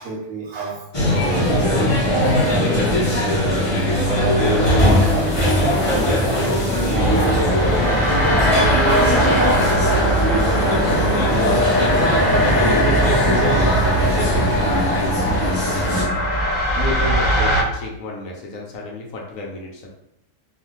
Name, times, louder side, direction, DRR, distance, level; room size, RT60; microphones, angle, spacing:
voice 1, 0.0-1.7 2.1-9.7, right 3 dB, 70° right, -1 dB, 0.9 m, -31 dB
sound 1, 0.9-16.0, left 1 dB, 30° left, 0.6 m, -20 dB
sound 2, 7.0-17.6, right 1 dB, 20° right, 0.8 m, -20 dB
voice 2, 11.0-11.6 12.1-13.7 14.0-19.9, left 2 dB, 70° left, -1 dB, 0.9 m, -30 dB
2.5 x 2.4 x 2.9 m, 0.81 s
omnidirectional pair, 1.6 m